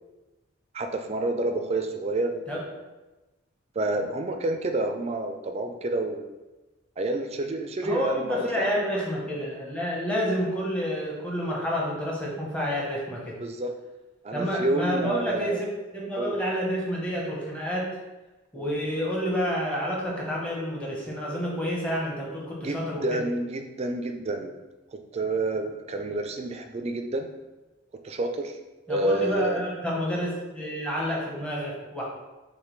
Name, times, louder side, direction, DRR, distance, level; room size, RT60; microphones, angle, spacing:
voice 1, 0.7-2.8 3.8-6.4 7.0-8.7 13.4-13.7 14.2-15.7 16.2-16.4 18.6-18.7 22.6-24.6 25.1-27.3 28.0-28.6 28.9-29.6, right 2 dB, 30° right, 5 dB, 0.3 m, -29 dB
voice 2, 7.8-13.4 14.3-17.9 18.5-23.2 28.9-32.0, equal, 5° left, -4 dB, 0.8 m, -29 dB
6.3 x 2.2 x 3.1 m, 1.1 s
head